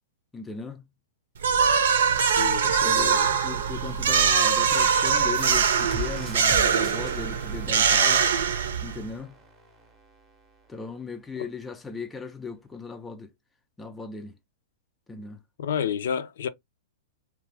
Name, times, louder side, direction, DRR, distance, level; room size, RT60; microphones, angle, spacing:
voice 1, 0.3-0.9 2.8-8.3 8.8-9.4 10.7-13.3 13.8-14.4 15.1-15.4, left 5 dB, 10° left, 0.4 m, -37 dB
sound 1, 1.4-9.1, right 6 dB, 80° right, 0.7 m, -22 dB
voice 2, 2.2-3.4 15.6-16.5, left 8 dB, 70° left, 0.5 m, -30 dB
sound 2, 5.3-10.7, right 2 dB, 15° right, 0.8 m, -39 dB
2.9 x 2.3 x 3.2 m
hypercardioid pair, 150°, 0 cm